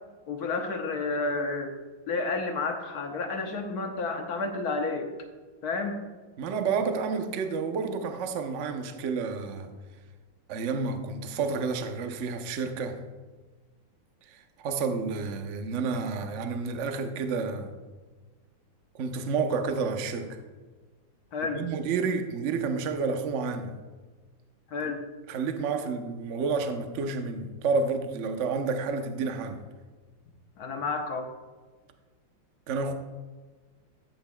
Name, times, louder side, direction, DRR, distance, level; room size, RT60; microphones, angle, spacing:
voice 1, 0.3-1.7 2.1-5.1 5.6-6.0 21.3-21.6 24.7-25.0 30.6-31.3, left 3 dB, 60° left, 1.2 m, -30 dB
voice 2, 6.4-9.7 10.5-13.0 14.3-17.7 18.9-20.4 21.5-23.8 24.8-24.9 25.3-29.6 32.7-32.9, right 4 dB, 75° right, 0.6 m, -30 dB
13.0 x 8.0 x 2.2 m
omnidirectional pair, 2.3 m